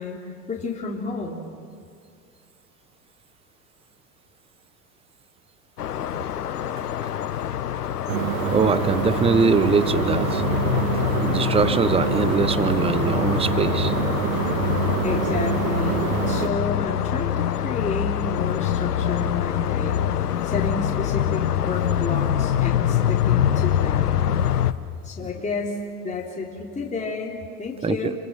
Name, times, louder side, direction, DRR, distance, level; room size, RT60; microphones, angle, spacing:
voice 1, 0.0-1.4 15.0-24.2 25.0-28.1, left 3 dB, 15° left, -3 dB, 3.9 m, -31 dB
sound 1, 5.8-24.7, left 10 dB, 80° left, 1.2 m, -24 dB
sound 2, 8.1-16.5, right 12 dB, 60° right, 1.6 m, -26 dB
voice 2, 8.5-10.4 11.2-13.9 27.8-28.1, right 5 dB, 10° right, 15 dB, 1.0 m, -22 dB
28.5 x 25.0 x 7.6 m, 2.4 s
hypercardioid pair, 90°, 45 cm